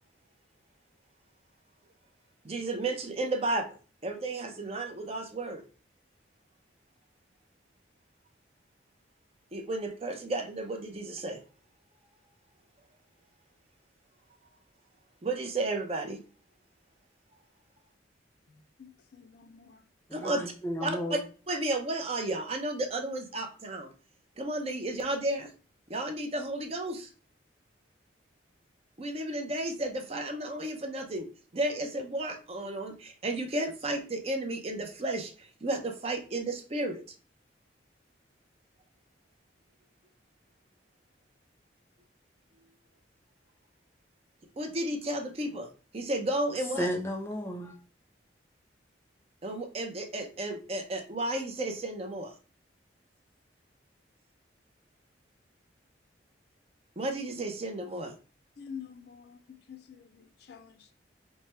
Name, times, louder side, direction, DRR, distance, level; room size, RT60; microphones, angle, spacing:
voice 1, 2.4-5.6 9.5-11.4 15.2-16.2 20.1-20.4 20.8-21.2 21.5-23.9 24.4-25.5 25.9-27.1 29.0-31.3 31.5-37.0 44.6-45.7 45.9-46.9 49.4-52.3 57.0-58.1, right 2 dB, 30° right, 0.5 m, -33 dB
voice 2, 18.5-19.9 58.6-60.9, left 7 dB, 55° left, 0.4 m, -48 dB
voice 3, 20.1-21.2 46.8-47.8, equal, 15° left, 0.7 m, -33 dB
3.1 x 2.2 x 4.2 m
head